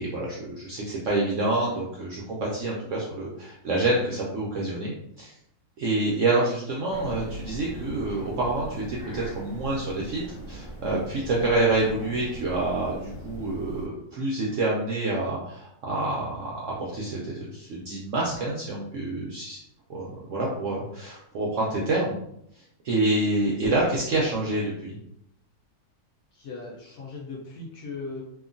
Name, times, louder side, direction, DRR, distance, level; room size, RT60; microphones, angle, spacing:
voice 1, 0.0-5.3 5.8-16.5 16.8-19.6 19.9-22.2 22.8-25.0, right 2 dB, 75° right, -4 dB, 0.7 m, -27 dB
sound 1, 6.9-13.9, right 1 dB, 15° left, 0.7 m, -40 dB
voice 2, 26.3-28.2, left 3 dB, 65° left, -2 dB, 0.9 m, -39 dB
2.8 x 2.4 x 2.5 m, 0.76 s
omnidirectional pair, 1.8 m